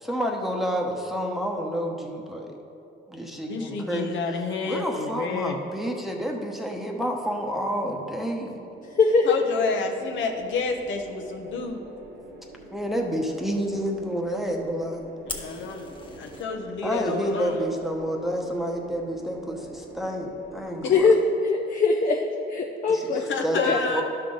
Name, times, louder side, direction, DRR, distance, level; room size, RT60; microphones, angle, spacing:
voice 1, 0.0-2.6 3.1-4.1 4.6-8.6 12.7-15.0 16.8-21.1 22.9-24.0, equal, ahead, 0 dB, 1.0 m, -29 dB
voice 2, 3.5-5.6 9.2-11.8 15.3-15.9 16.2-17.7 20.8-21.1 23.3-24.0, left 4 dB, 70° left, 3 dB, 0.9 m, -30 dB
sound 1, 5.9-21.2, right 1 dB, 65° right, 1.3 m, -46 dB
voice 3, 8.8-9.4 20.9-23.8, left 4 dB, 40° left, 0 dB, 0.6 m, -22 dB
Fire, 15.3-16.4, left 3 dB, 25° left, 1.1 m, -38 dB
11.5 x 5.6 x 3.9 m, 2.7 s
cardioid pair, 90°, 20 cm